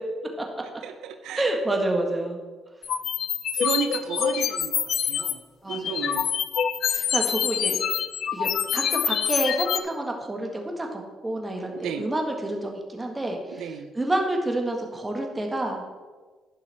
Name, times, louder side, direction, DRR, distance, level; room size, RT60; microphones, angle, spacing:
voice 1, 0.6-1.5 3.5-5.4 5.7-6.3 11.7-12.1 13.5-13.9, right 7 dB, 85° right, 8 dB, 0.6 m, -33 dB
voice 2, 1.4-2.4 5.6-6.1 6.8-7.8 8.3-13.6 13.9-15.9, right 1 dB, 15° right, 1 dB, 1.7 m, -28 dB
sound 1, 2.8-5.3 5.7-9.8, left 8 dB, 70° left, 0.5 m, -26 dB
11.0 x 5.6 x 4.4 m, 1.4 s
cardioid pair, 90°, 0 cm